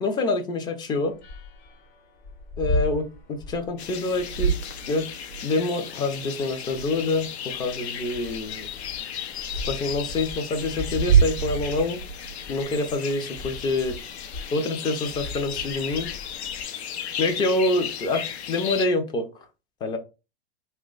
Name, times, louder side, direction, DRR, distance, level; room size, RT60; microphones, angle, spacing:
voice 1, 0.0-1.1 2.6-4.6 4.9-5.1 5.4-8.7 9.7-12.0 12.5-14.0 14.5-16.1 17.2-19.3 19.8-20.0, left 2 dB, 15° left, 0.4 m, -26 dB
sound 1, 1.1-16.7, left 1 dB, 40° left, 0.9 m, -38 dB
sound 2, 3.8-18.9, left 9 dB, 75° left, 0.6 m, -35 dB
sound 3, 4.1-5.5 6.6-7.3 9.5-9.6 10.9-12.9, right 8 dB, 70° right, 0.5 m, -26 dB
3.0 x 2.2 x 3.7 m
hypercardioid pair, 125°, 33 cm